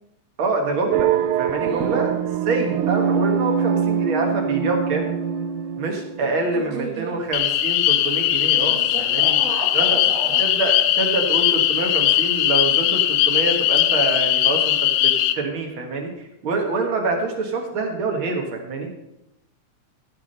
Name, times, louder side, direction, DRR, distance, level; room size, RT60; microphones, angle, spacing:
voice 1, 0.4-2.1 2.5-5.1 5.8-9.4 9.7-10.0 10.4-18.9, right 3 dB, 50° right, 2 dB, 1.6 m, -26 dB
sound 1, 0.9-6.3, right 8 dB, 85° right, 1.7 m, -23 dB
voice 2, 1.6-2.1 6.2-7.2 8.7-10.4, right 5 dB, 70° right, -3 dB, 3.2 m, -33 dB
sound 2, 7.3-15.3, left 13 dB, 80° left, 2.2 m, -19 dB
15.5 x 6.2 x 5.4 m, 0.86 s
omnidirectional pair, 4.1 m